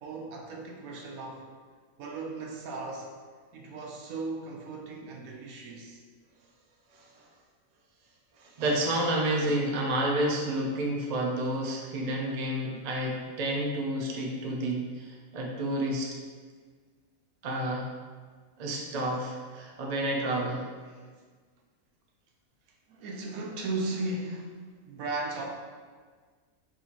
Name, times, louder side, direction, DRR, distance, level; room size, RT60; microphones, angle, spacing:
voice 1, 0.0-1.5 2.0-3.1 3.5-6.0 18.8-18.9 20.9-21.1 22.9-25.5, right 2 dB, 80° right, 0 dB, 1.1 m, -36 dB
voice 2, 6.9-7.2 8.4-16.1 17.4-17.9 18.6-20.7, right 1 dB, 50° right, -1 dB, 0.5 m, -30 dB
5.8 x 2.7 x 3.0 m, 1.5 s
omnidirectional pair, 1.5 m